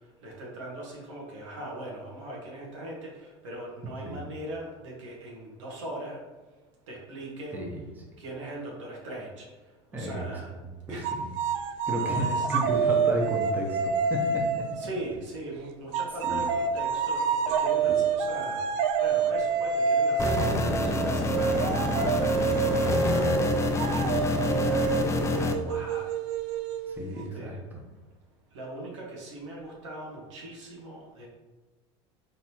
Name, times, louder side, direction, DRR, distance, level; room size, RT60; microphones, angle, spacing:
voice 1, 0.2-6.2 6.9-7.6 8.2-9.4 9.9-10.5 10.9-11.2 11.4-11.6 12.0-12.5 14.7-18.6 19.0-23.3 23.9-26.1 27.1-27.6 28.5-31.3, right 1 dB, 90° right, -3 dB, 1.3 m, -40 dB
voice 2, 7.5-8.0 9.9-10.3 10.5-11.3 11.9-14.7 16.2-16.4 17.8-18.0 24.2-24.4 26.9-27.8, right 1 dB, 10° right, -2 dB, 1.0 m, -33 dB
sound 1, 11.0-14.9 15.9-27.2, right 6 dB, 70° right, 0.4 m, -27 dB
sound 2, 20.2-25.5, left 3 dB, 20° left, 0.4 m, -27 dB
4.0 x 3.6 x 2.9 m, 1.2 s
supercardioid pair, 100°, 15 cm